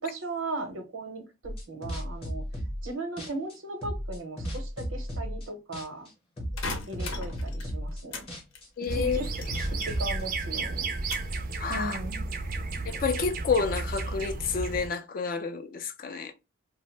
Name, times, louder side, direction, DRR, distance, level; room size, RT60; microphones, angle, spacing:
voice 1, 0.0-2.4 2.8-6.1 6.9-8.3 8.9-9.3 9.6-10.9 11.7-12.3, right 2 dB, 80° right, 0.7 m, -37 dB
sound 1, 1.4-2.9 3.2-5.5 5.7-6.1 6.4-10.2, equal, 30° left, 0.7 m, -35 dB
sound 2, 6.6-8.3 8.5-10.3 10.6-11.4 11.9-12.4, left 3 dB, 80° left, 0.7 m, -39 dB
voice 2, 8.8-9.2 11.6-12.0 12.9-16.3, left 5 dB, 45° left, 0.3 m, -29 dB
sound 3, 8.9-14.9, right 3 dB, 45° right, 0.4 m, -33 dB
2.6 x 2.0 x 3.1 m
head